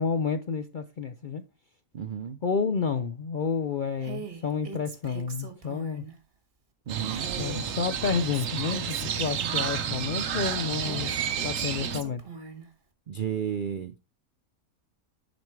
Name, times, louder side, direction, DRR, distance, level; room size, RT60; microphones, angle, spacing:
voice 1, 0.0-1.4 2.4-6.0 7.4-11.1 11.4-12.2, left 5 dB, 60° left, 0.5 m, -30 dB
voice 2, 1.9-2.4 6.9-7.3 13.1-14.0, right 8 dB, 85° right, 0.4 m, -32 dB
Female speech woman speaking, 4.0-6.1 7.1-10.0 10.8-12.7, right 5 dB, 40° right, 1.6 m, -41 dB
Crow, 6.9-12.0, right 8 dB, 65° right, 1.2 m, -31 dB
10.5 x 5.3 x 4.5 m
omnidirectional pair, 1.6 m